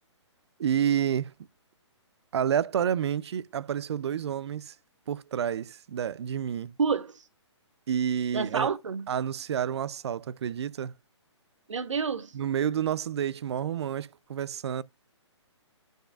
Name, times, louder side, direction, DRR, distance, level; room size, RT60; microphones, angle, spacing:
voice 1, 0.6-1.3 2.3-4.7 5.1-6.7 7.9-8.7 9.1-10.9 12.3-14.8, right 9 dB, 60° right, 0.4 m, -29 dB
voice 2, 6.8-7.2 8.3-9.1 11.7-12.3, right 5 dB, 85° right, 1.1 m, -29 dB
9.2 x 6.8 x 2.3 m
hypercardioid pair, 150°, 16 cm